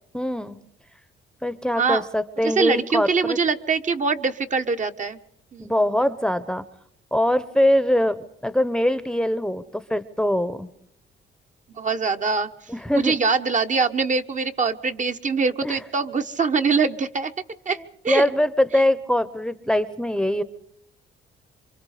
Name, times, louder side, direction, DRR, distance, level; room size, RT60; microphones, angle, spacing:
voice 1, 0.1-0.6 1.4-3.4 5.6-6.6 7.1-8.2 8.4-10.7 12.7-13.1 15.6-15.8 17.7-20.4, left 1 dB, 5° left, 15 dB, 0.9 m, -22 dB
voice 2, 2.4-5.2 5.5-5.7 11.7-12.5 12.9-17.3 17.6-17.8 18.0-18.2, right 4 dB, 40° right, 7 dB, 1.2 m, -23 dB
27.0 x 24.0 x 5.0 m, 0.74 s
cardioid pair, 90°, 20 cm